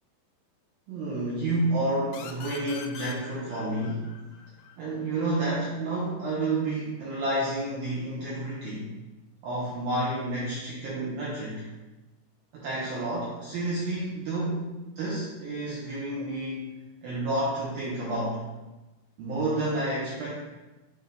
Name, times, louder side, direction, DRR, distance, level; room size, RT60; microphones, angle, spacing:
voice 1, 0.9-4.1 4.8-8.9 9.4-11.7 12.5-16.7 17.0-18.4 19.2-20.3, right 2 dB, 75° right, -7 dB, 2.3 m, -30 dB
sound 1, 2.1-5.5, left 6 dB, 80° left, 2.4 m, -44 dB
7.6 x 3.9 x 3.4 m, 1.1 s
omnidirectional pair, 5.4 m